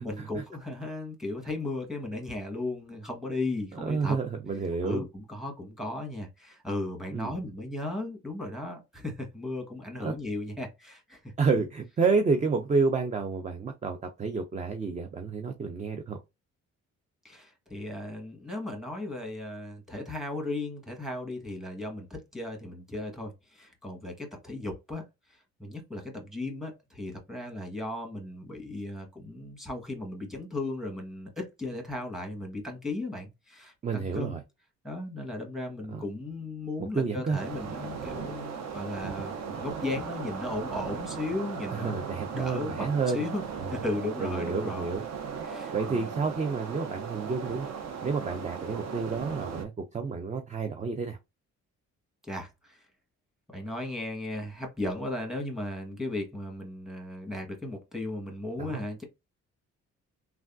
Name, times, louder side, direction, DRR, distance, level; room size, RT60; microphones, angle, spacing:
voice 1, 0.0-4.2 4.8-11.3 17.2-25.0 25.3-34.4 34.8-42.9 43.1-43.4 43.7-44.9 45.4-46.1 52.2-52.9 53.5-59.0, left 2 dB, ahead, 1.3 m, -36 dB
voice 2, 3.7-5.0 7.1-7.4 10.0-10.1 11.4-16.2 33.8-34.4 35.9-36.0 37.0-37.4 41.7-43.2 43.6-43.7 44.2-45.0 45.7-47.7 48.0-51.2 58.6-58.8, right 4 dB, 25° right, 0.4 m, -29 dB
sound 1, 37.4-49.7, right 6 dB, 60° right, 0.8 m, -37 dB
3.3 x 2.3 x 2.5 m
cardioid pair, 90°, 30 cm